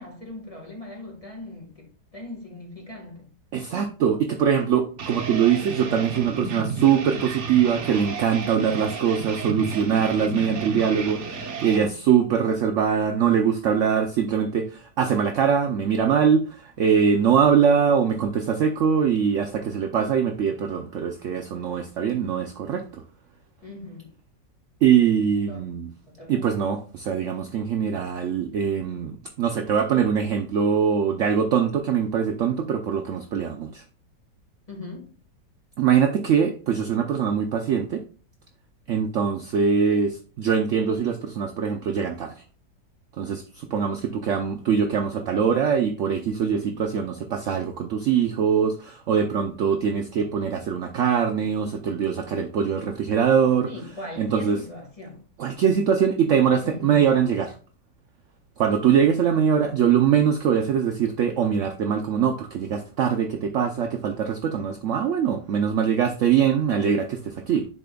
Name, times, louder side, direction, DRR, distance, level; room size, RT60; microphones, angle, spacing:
voice 1, 0.0-3.3 23.6-24.2 25.5-25.8 26.0-26.5 34.7-35.1 53.7-55.2 56.6-57.0, left 2 dB, 20° left, 1.5 m, -40 dB
voice 2, 3.5-23.0 24.8-25.9 26.3-33.8 35.8-38.0 38.9-42.3 43.2-53.7 54.2-54.6 55.4-57.5 58.6-67.7, right 7 dB, 75° right, 0.6 m, -22 dB
sound 1, 5.0-11.9, right 4 dB, 50° right, 1.0 m, -32 dB
10.0 x 4.2 x 2.3 m
omnidirectional pair, 1.9 m